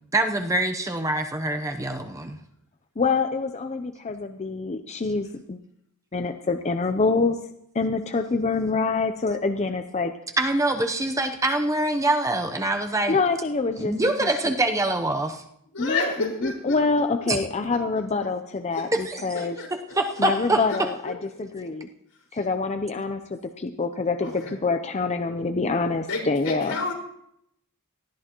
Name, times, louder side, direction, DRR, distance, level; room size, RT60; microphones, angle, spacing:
voice 1, 0.1-2.4 10.4-13.2 13.8-15.4 17.3-17.4 19.1-19.2 20.0-20.6, right 2 dB, 15° right, 5 dB, 0.8 m, -24 dB
voice 2, 3.0-5.6 6.1-7.4 7.7-10.1 13.1-13.9 14.2-14.3 15.8-19.6 20.2-21.9 22.3-26.8, left 4 dB, 30° left, 7 dB, 0.5 m, -26 dB
voice 3, 15.7-16.8 18.7-18.8 19.6-19.7 20.7-20.8 21.0-21.1 24.2-24.6 26.1-26.9, left 3 dB, 90° left, -2 dB, 5.0 m, -29 dB
19.0 x 13.0 x 3.0 m, 0.74 s
head